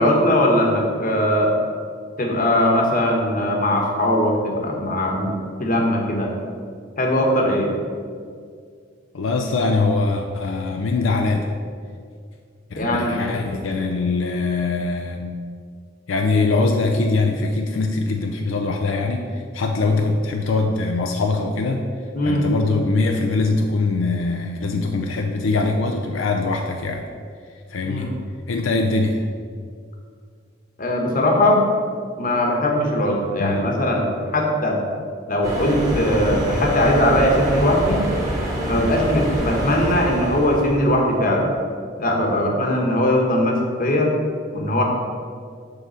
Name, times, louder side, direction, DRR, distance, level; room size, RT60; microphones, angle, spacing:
voice 1, 0.0-1.5 2.2-5.3 5.6-6.3 7.0-7.7 12.7-13.2 22.1-22.4 27.8-28.1 30.8-31.6 32.2-34.0 34.3-34.8 35.3-38.1 38.6-41.5 42.0-44.1 44.5-44.8, left 1 dB, 45° left, 1 dB, 1.1 m, -20 dB
voice 2, 9.1-11.5 12.7-15.3 16.1-19.3 19.5-21.8 22.3-27.1 27.7-28.1 28.5-29.2 33.4-33.7, left 3 dB, 80° left, 3 dB, 0.5 m, -22 dB
sound 1, 35.4-41.0, right 1 dB, 20° right, 1.4 m, -26 dB
6.7 x 3.8 x 6.2 m, 2.1 s
head